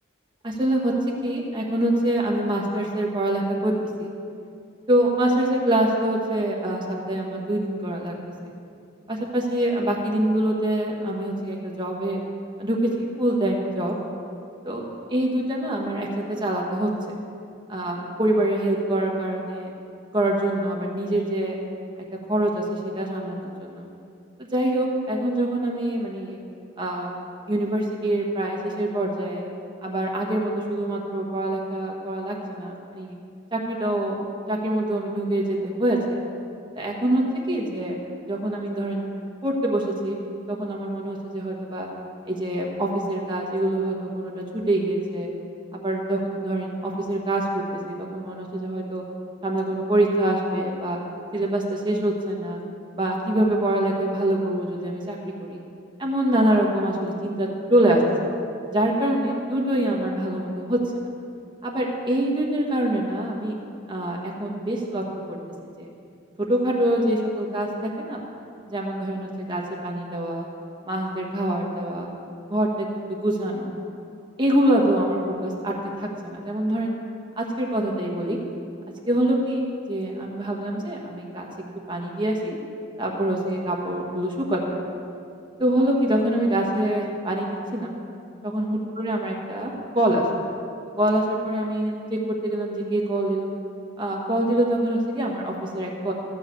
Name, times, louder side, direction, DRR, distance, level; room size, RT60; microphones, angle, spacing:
voice 1, 0.4-0.9 1.2-3.7 4.0-4.1 4.9-8.1 8.4-8.5 9.1-12.2 12.6-13.9 14.6-14.8 15.1-17.1 17.7-19.7 20.1-21.6 22.3-23.9 24.4-26.4 26.8-27.1 27.5-29.4 29.8-33.1 33.5-34.2 34.5-36.2 36.7-37.2 37.5-38.0 38.3-39.1 39.4-40.2 40.5-41.9 42.3-45.3 45.7-49.0 49.4-51.0 51.3-52.6 52.9-55.6 56.0-58.0 58.7-61.0 61.6-63.5 63.9-65.4 65.8-65.9 66.5-68.2 68.7-70.5 70.8-72.1 72.5-73.7 74.4-75.7 76.0-77.0 77.4-78.4 79.1-79.6 79.9-81.5 81.9-82.6 83.0-84.8 85.6-88.0 88.4-90.2 91.0-93.5 94.0-96.1, right 1 dB, 20° right, -1 dB, 1.4 m, -25 dB
14.0 x 4.9 x 8.2 m, 2.5 s
head